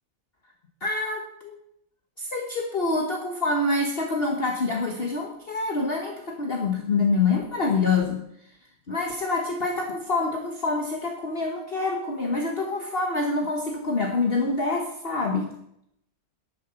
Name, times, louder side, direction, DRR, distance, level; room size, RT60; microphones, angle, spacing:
voice 1, 0.8-1.6 2.2-8.2 8.9-15.5, left 3 dB, 40° left, 2 dB, 1.6 m, -26 dB
11.0 x 11.0 x 5.7 m, 0.74 s
omnidirectional pair, 1.6 m